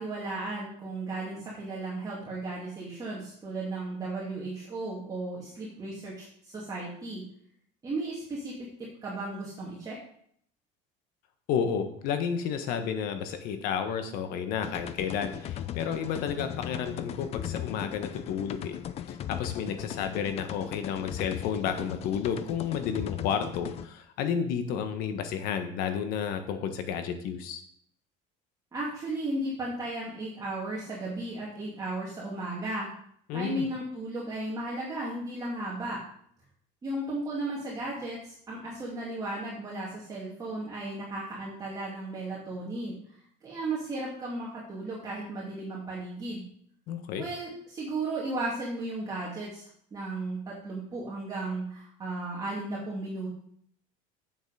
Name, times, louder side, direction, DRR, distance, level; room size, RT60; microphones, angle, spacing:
voice 1, 0.0-7.3 7.8-8.5 8.8-10.0 28.7-32.9 33.3-36.0 36.8-43.0 43.4-46.4 47.2-49.6 49.9-53.3, right 2 dB, 20° right, -6 dB, 2.5 m, -35 dB
voice 2, 11.5-18.8 19.1-27.6 33.3-33.7 46.9-47.2, left 7 dB, 65° left, 7 dB, 1.4 m, -31 dB
sound 1, 14.6-23.9, left 11 dB, 40° left, 0.6 m, -38 dB
8.4 x 7.5 x 4.9 m, 0.65 s
cardioid pair, 140°, 17 cm